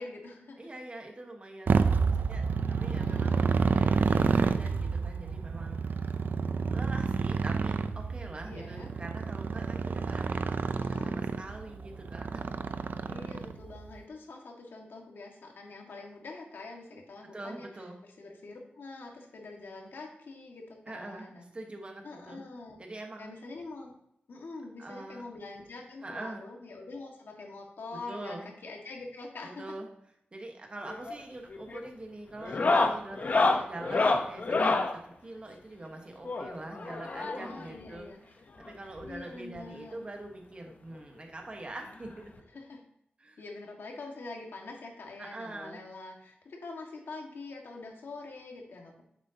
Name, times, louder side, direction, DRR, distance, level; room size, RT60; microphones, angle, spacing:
voice 1, 0.0-0.7 2.9-4.0 8.5-8.9 10.8-11.2 13.1-17.7 18.2-21.4 22.0-22.8 23.2-23.9 24.3-29.6 33.5-33.6 37.4-38.2 39.0-40.1 42.5-42.8 43.4-49.0, left 3 dB, 85° left, 0 dB, 1.7 m, -45 dB
voice 2, 0.6-3.4 3.7-5.9 6.7-12.6 17.3-18.0 20.9-22.4 22.8-23.3 24.8-25.2 26.0-26.4 28.1-28.5 29.4-29.9 30.3-38.1 38.6-42.4 43.2-43.4 45.2-45.8, right 2 dB, 30° right, 2 dB, 1.3 m, -44 dB
Motorcycle, 1.7-13.8, right 5 dB, 60° right, 0.4 m, -29 dB
sound 1, 30.9-31.2 31.5-31.9 32.4-34.9 36.3-37.6 38.7-38.8 39.0-39.1 39.6-39.7 41.0-41.1 42.4-42.5, left 3 dB, 50° left, 0.8 m, -27 dB
9.3 x 7.4 x 2.8 m, 0.75 s
wide cardioid pair, 150°, 4 cm